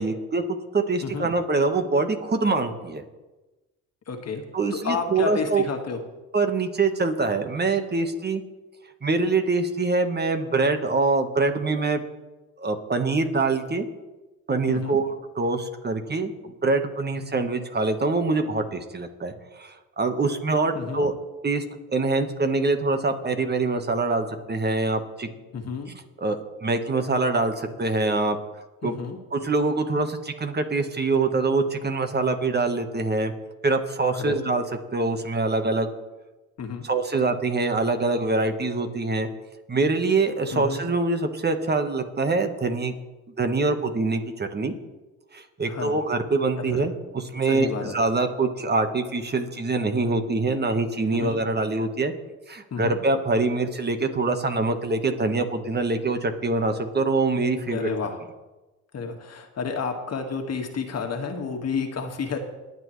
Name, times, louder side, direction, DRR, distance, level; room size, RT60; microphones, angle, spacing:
voice 1, 0.0-3.0 4.5-5.6 6.3-8.4 9.0-12.0 12.6-13.9 14.5-21.1 21.4-21.6 21.9-25.3 26.2-28.4 28.8-28.9 29.3-33.3 33.6-34.6 34.9-35.9 36.8-39.3 39.7-42.9 43.4-44.7 45.3-52.1 52.5-57.9, right 3 dB, 30° right, 6 dB, 1.5 m, -24 dB
voice 2, 4.1-4.4 4.8-6.0 14.7-15.0 17.2-17.3 20.7-21.0 25.5-25.9 28.8-29.2 34.1-34.5 36.6-36.9 40.5-40.8 45.7-45.9 46.6-46.8 47.4-48.0 51.1-51.4 52.7-53.0 57.7-58.2 58.9-62.4, left 5 dB, 45° left, 4 dB, 1.9 m, -30 dB
21.5 x 8.1 x 3.3 m, 1.1 s
supercardioid pair, 70°, 34 cm